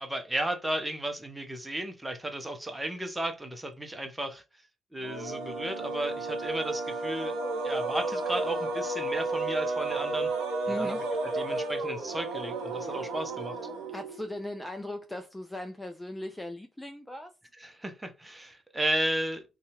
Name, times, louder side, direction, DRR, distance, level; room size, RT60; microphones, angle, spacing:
voice 1, 0.0-4.4 4.9-7.3 7.6-10.3 10.8-10.9 11.3-13.5 17.6-19.4, right 1 dB, 15° right, 0.7 m, -34 dB
sound 1, 5.0-14.3, right 2 dB, 85° right, 0.7 m, -32 dB
voice 2, 10.7-11.0 12.8-13.0 13.9-17.3, left 1 dB, 10° left, 0.4 m, -38 dB
2.7 x 2.4 x 2.8 m
supercardioid pair, 55°, 0 cm